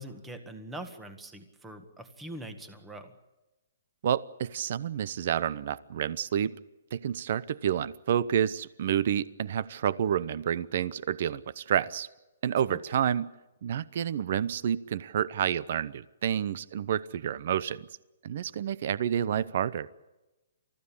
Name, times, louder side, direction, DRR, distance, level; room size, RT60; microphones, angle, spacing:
voice 1, 0.0-3.1 12.7-12.8, right 1 dB, 5° right, 7 dB, 1.7 m, -43 dB
voice 2, 4.0-6.5 6.9-12.1 12.4-13.3 13.6-17.9 18.2-19.9, right 9 dB, 45° right, 18 dB, 0.8 m, -29 dB
29.5 x 15.0 x 8.7 m, 1.1 s
hypercardioid pair, 170°, 0 cm